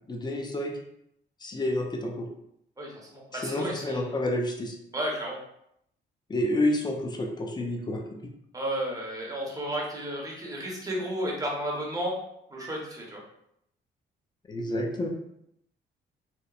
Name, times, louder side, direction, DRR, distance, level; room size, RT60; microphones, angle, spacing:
voice 1, 0.1-0.7 1.4-2.3 3.3-4.7 6.3-8.0 14.5-15.1, left 1 dB, 20° left, 2 dB, 0.5 m, -29 dB
voice 2, 2.8-4.2 4.9-5.4 8.5-12.2 12.5-13.2, equal, 15° right, -3 dB, 0.8 m, -33 dB
2.9 x 2.0 x 2.3 m, 0.76 s
cardioid pair, 90°, 20 cm